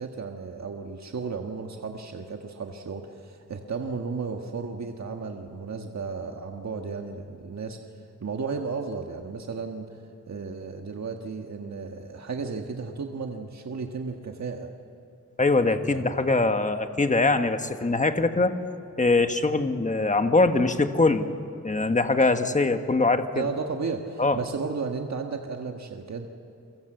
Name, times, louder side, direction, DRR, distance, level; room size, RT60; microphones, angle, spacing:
voice 1, 0.0-7.8 8.2-10.0 10.3-14.7 15.8-16.2 23.3-26.3, right 4 dB, 65° right, 3 dB, 1.6 m, -34 dB
voice 2, 15.4-18.5 19.0-21.3 21.6-23.5 24.2-24.4, left 3 dB, 25° left, 7 dB, 1.4 m, -22 dB
29.5 x 23.5 x 7.9 m, 2.4 s
wide cardioid pair, 115°, 29 cm